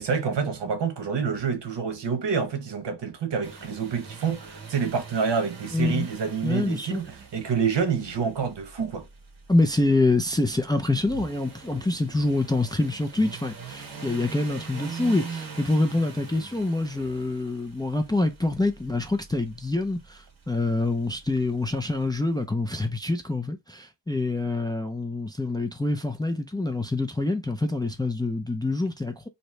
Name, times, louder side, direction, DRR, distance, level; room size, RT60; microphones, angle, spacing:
voice 1, 0.0-9.1, right 6 dB, 75° right, 1.0 m, -27 dB
sound 1, 3.4-22.3, right 5 dB, 50° right, 1.3 m, -43 dB
voice 2, 5.7-6.1 6.4-7.0 9.5-29.3, left 2 dB, 10° left, 0.4 m, -26 dB
3.1 x 2.8 x 3.1 m
wide cardioid pair, 120°, 43 cm